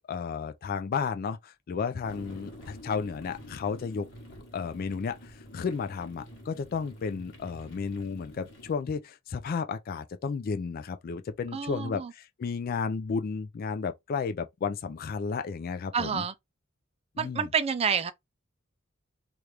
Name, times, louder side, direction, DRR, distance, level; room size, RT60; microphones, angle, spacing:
voice 1, 0.1-4.1 4.5-16.2 17.2-17.5, left 5 dB, 45° left, 0.3 m, -33 dB
sound 1, 2.0-8.8, left 1 dB, 65° left, 1.2 m, -48 dB
voice 2, 11.5-12.1 15.9-16.3 17.2-18.1, right 6 dB, 30° right, 0.4 m, -28 dB
2.9 x 2.4 x 3.2 m
head